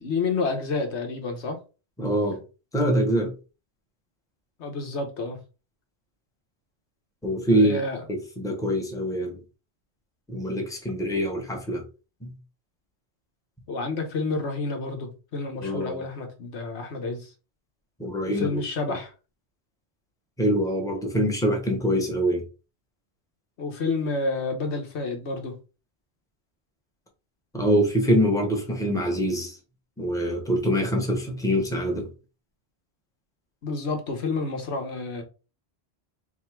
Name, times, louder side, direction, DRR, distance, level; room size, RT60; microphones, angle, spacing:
voice 1, 0.0-1.6 4.6-5.4 7.5-8.0 13.7-17.3 18.3-19.1 23.6-25.6 33.6-35.2, left 3 dB, 90° left, 1.3 m, -29 dB
voice 2, 2.0-2.4 2.7-3.3 7.2-7.8 8.1-9.4 10.3-11.8 12.2-12.3 15.6-16.0 18.0-18.6 20.4-22.4 27.5-29.6 30.0-32.1, equal, 5° left, 0.9 m, -24 dB
3.6 x 2.7 x 4.4 m
omnidirectional pair, 1.1 m